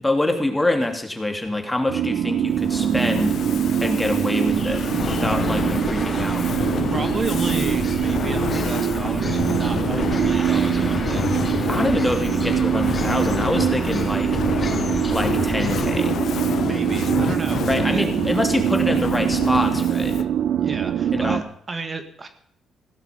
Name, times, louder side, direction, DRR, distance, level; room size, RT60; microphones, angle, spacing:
voice 1, 0.0-3.4 3.8-6.5 11.7-14.4 15.0-16.2 17.7-20.2 21.1-21.4, left 1 dB, 10° left, 5 dB, 2.7 m, -25 dB
sound 1, 1.9-21.4, right 9 dB, 70° right, 0.7 m, -23 dB
Fire, 2.5-20.4, left 8 dB, 65° left, 0.7 m, -30 dB
sound 2, 4.5-15.9, left 3 dB, 30° left, 3.5 m, -31 dB
voice 2, 6.9-11.3 16.6-17.6 17.9-18.1 20.6-22.3, right 3 dB, 30° right, 9 dB, 1.7 m, -32 dB
16.5 x 11.5 x 5.2 m, 0.65 s
cardioid pair, 90°, 0 cm